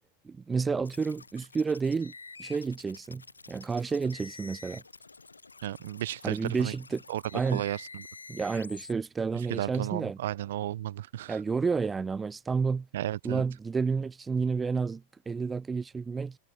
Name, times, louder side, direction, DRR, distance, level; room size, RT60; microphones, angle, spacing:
voice 1, 0.2-2.1 2.4-3.2 3.5-4.8 6.2-7.0 7.3-7.6 8.3-10.2 11.3-12.9 13.2-16.4, right 5 dB, 15° right, 0.3 m, -30 dB
sound 1, 0.8-8.9, left 4 dB, 80° left, 1.1 m, -49 dB
voice 2, 5.6-6.7 7.1-8.1 9.3-11.4 12.9-13.4, right 13 dB, 55° right, 0.7 m, -34 dB
figure-of-eight pair, 90°, 0 cm